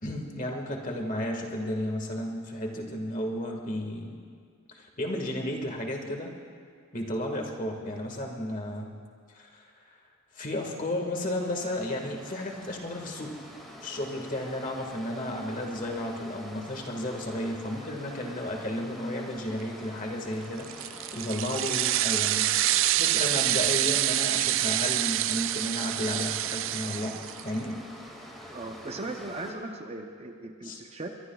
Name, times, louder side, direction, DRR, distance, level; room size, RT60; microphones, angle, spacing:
voice 1, 0.0-4.2 4.7-6.3 6.9-8.9 9.3-9.7 10.3-13.4 13.8-22.5 22.9-27.2 27.4-27.8 28.4-28.6 30.6-30.8, left 1 dB, 40° left, 1 dB, 1.8 m, -33 dB
sound 1, 11.1-29.5, equal, ahead, 2.2 m, -46 dB
sound 2, 20.6-27.6, right 14 dB, 65° right, 0.4 m, -27 dB
voice 2, 28.5-31.1, right 2 dB, 30° right, 4 dB, 0.7 m, -38 dB
22.5 x 22.5 x 2.4 m, 2.1 s
head